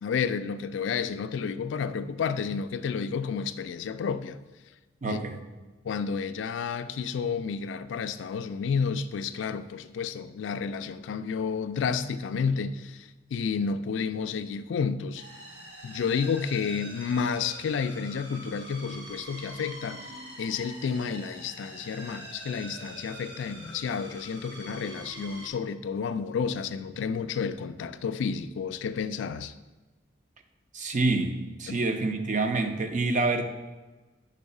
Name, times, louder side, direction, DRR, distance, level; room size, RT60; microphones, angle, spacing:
voice 1, 0.0-4.4 5.1-5.2 5.8-15.3 15.8-20.0 20.4-29.5 31.7-31.8, left 6 dB, 80° left, 0.3 m, -31 dB
voice 2, 5.0-5.4 30.7-33.4, right 3 dB, 40° right, 0.6 m, -27 dB
sound 1, 15.2-25.5, right 1 dB, 70° right, 1.3 m, -44 dB
5.3 x 4.7 x 5.3 m
head